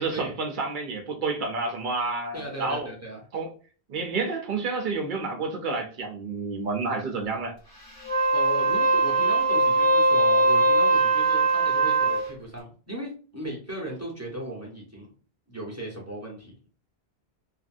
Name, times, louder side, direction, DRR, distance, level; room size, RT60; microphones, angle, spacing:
voice 1, 0.0-2.9 3.3-3.5 3.9-7.6, right 3 dB, 55° right, 0.7 m, -29 dB
voice 2, 2.3-3.2 8.3-15.1 15.5-16.6, right 1 dB, 15° right, 0.8 m, -37 dB
Wind instrument woodwind instrument, 8.0-12.3, right 3 dB, 35° left, 0.8 m, -21 dB
2.8 x 2.5 x 2.5 m
omnidirectional pair, 1.1 m